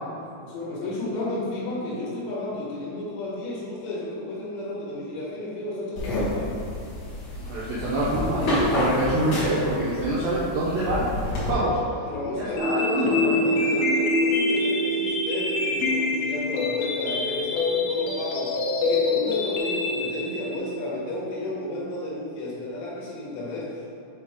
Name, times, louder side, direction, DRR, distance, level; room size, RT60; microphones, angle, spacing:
voice 1, 0.4-6.6 12.1-18.5 18.8-23.9, left 1 dB, 75° left, -7 dB, 3.6 m, -32 dB
sound 1, 6.0-11.5, left 1 dB, 60° left, 2.1 m, -29 dB
voice 2, 7.4-11.0 11.3-11.8 12.4-13.4 19.2-19.3, right 1 dB, 80° right, -8 dB, 2.1 m, -26 dB
sound 2, 12.6-20.6, left 2 dB, 90° left, 2.1 m, -25 dB
7.7 x 3.0 x 5.0 m, 2.7 s
omnidirectional pair, 5.3 m